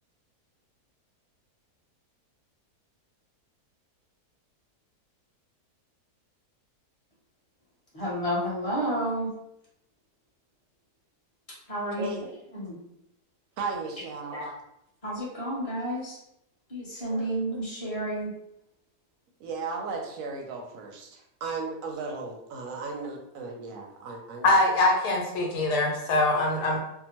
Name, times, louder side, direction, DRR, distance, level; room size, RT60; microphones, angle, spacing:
voice 1, 7.9-9.3 11.7-12.1 12.5-12.8 14.3-14.5 15.0-16.2 16.7-18.3, right 1 dB, 30° left, -7 dB, 0.7 m, -30 dB
voice 2, 13.6-14.5 17.1-17.3 19.4-24.5, right 4 dB, 70° right, 1 dB, 0.9 m, -36 dB
voice 3, 24.4-26.8, left 2 dB, 85° left, -1 dB, 1.2 m, -23 dB
2.8 x 2.1 x 2.8 m, 0.81 s
omnidirectional pair, 1.7 m